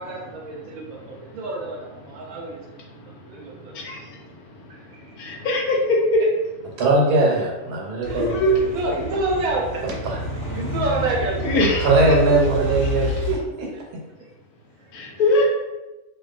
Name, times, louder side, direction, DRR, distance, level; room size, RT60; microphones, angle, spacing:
voice 1, 0.0-2.6 2.9-3.7 4.7-5.2 8.1-8.2 8.7-9.8 10.5-11.5, right 2 dB, 70° right, -2 dB, 1.0 m, -28 dB
voice 2, 5.2-6.0 8.2-8.6 11.4-11.9 14.9-15.4, left 1 dB, 80° left, -1 dB, 1.1 m, -21 dB
voice 3, 6.8-8.4 9.8-10.2 11.5-14.0, right 2 dB, 90° right, -1 dB, 1.2 m, -21 dB
sound 1, 8.0-13.4, left 2 dB, 45° right, 0.9 m, -29 dB
2.6 x 2.2 x 2.3 m, 1.1 s
omnidirectional pair, 1.6 m